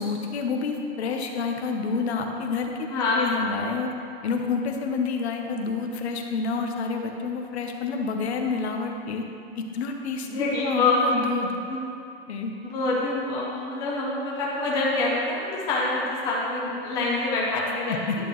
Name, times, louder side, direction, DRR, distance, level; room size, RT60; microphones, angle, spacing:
voice 1, 0.0-2.9 3.1-3.9 4.2-9.2 9.6-11.6 12.3-12.5 18.1-18.2, left 5 dB, 75° left, 3 dB, 1.0 m, -28 dB
voice 2, 2.9-3.4 10.2-11.4 11.6-11.8 12.6-18.0, left 2 dB, 10° left, -5 dB, 0.6 m, -26 dB
10.5 x 7.1 x 3.1 m, 2.5 s
supercardioid pair, 180°, 33 cm